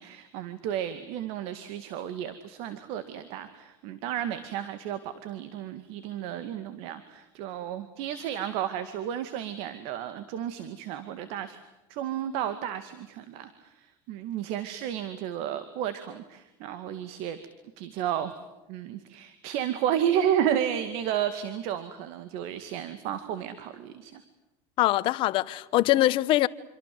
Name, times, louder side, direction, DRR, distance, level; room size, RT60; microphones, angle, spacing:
voice 1, 0.0-11.6 11.9-17.4 17.8-18.3 18.7-24.2, right 10 dB, 65° right, 2.2 m, -32 dB
voice 2, 24.8-26.5, left 16 dB, 55° left, 1.2 m, -23 dB
27.5 x 25.5 x 7.9 m
supercardioid pair, 130°, 11 cm